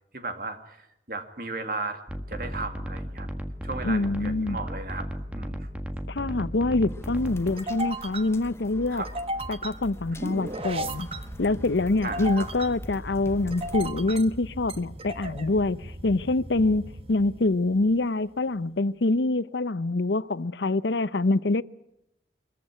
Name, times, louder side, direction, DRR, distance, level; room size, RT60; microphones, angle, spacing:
voice 1, 0.1-2.0 2.3-3.3 3.6-5.1 5.3-5.7 8.9-9.1 12.0-12.5, right 3 dB, 55° right, 2.4 m, -35 dB
sound 1, 2.1-7.5, equal, 10° right, 1.5 m, -35 dB
voice 2, 3.8-4.6 6.1-9.0 9.5-11.1 11.4-21.6, left 2 dB, 85° left, 0.7 m, -25 dB
sound 2, 5.3-18.0, right 1 dB, 35° right, 1.1 m, -37 dB
sound 3, 6.9-13.9, left 1 dB, 15° left, 0.9 m, -43 dB
23.5 x 14.5 x 9.9 m
head